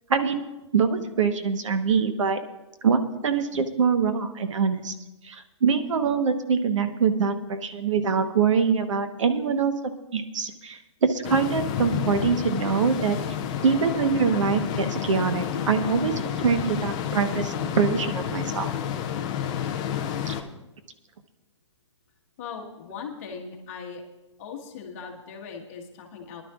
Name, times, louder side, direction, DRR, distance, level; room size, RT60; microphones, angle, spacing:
voice 1, 0.1-0.4 0.7-2.4 2.8-4.9 5.2-9.7 10.1-13.2 13.6-18.7 20.3-20.4, right 6 dB, 85° right, 8 dB, 1.1 m, -24 dB
sound 1, 11.2-20.4, left 9 dB, 15° left, 0.3 m, -30 dB
voice 2, 22.4-24.0 24.4-26.4, left 6 dB, 30° left, 0 dB, 1.5 m, -39 dB
23.0 x 11.5 x 2.4 m, 1.0 s
hypercardioid pair, 175°, 16 cm